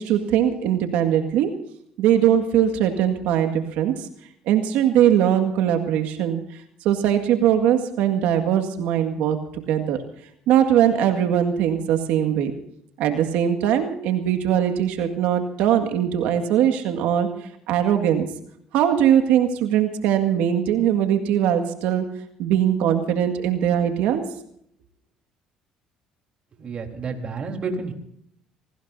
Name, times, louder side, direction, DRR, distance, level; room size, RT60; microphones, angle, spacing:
voice 1, 0.0-1.5 2.0-4.1 4.5-6.4 6.8-9.4 9.7-10.0 10.5-12.5 13.0-18.3 18.7-22.1 22.4-24.2, right 10 dB, 80° right, 6 dB, 1.9 m, -21 dB
voice 2, 26.5-27.9, right 4 dB, 45° right, 3 dB, 3.8 m, -30 dB
25.5 x 18.5 x 2.7 m, 0.71 s
supercardioid pair, 85°, 3 cm